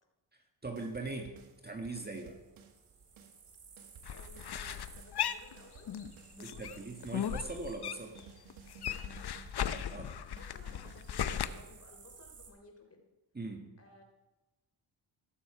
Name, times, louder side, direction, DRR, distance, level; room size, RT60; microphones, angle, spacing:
voice 1, 0.6-1.4 1.6-2.4 6.4-8.2 9.9-10.2 13.3-13.7, right 3 dB, 20° right, 2 dB, 1.7 m, -40 dB
sound 1, 0.6-2.9 3.2-12.2, right 6 dB, 80° right, 1.5 m, -57 dB
sound 2, 1.6-12.5, right 5 dB, 55° right, 2.6 m, -58 dB
sound 3, 4.0-6.1 6.4-8.2 8.5-11.5, left 9 dB, 55° left, 0.8 m, -37 dB
voice 2, 4.1-5.9 6.3-6.9 8.9-9.4 10.3-13.0 13.8-14.0, left 2 dB, 30° left, 3 dB, 3.4 m, -56 dB
17.5 x 6.9 x 4.9 m, 1.1 s
supercardioid pair, 60°, 48 cm